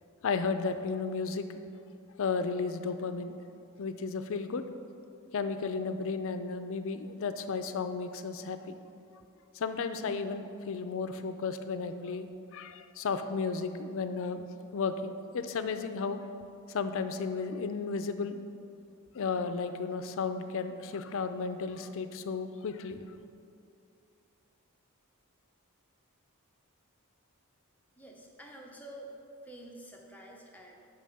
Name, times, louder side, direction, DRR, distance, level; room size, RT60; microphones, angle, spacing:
voice 1, 0.2-1.5 2.2-3.4 3.8-4.6 5.3-8.7 9.5-14.5 14.7-16.2 16.7-18.4 19.1-23.0, left 4 dB, 60° left, 9 dB, 0.4 m, -33 dB
voice 2, 28.0-29.1 29.4-30.9, right 1 dB, 5° left, -1 dB, 0.8 m, -49 dB
5.9 x 5.6 x 6.3 m, 2.5 s
head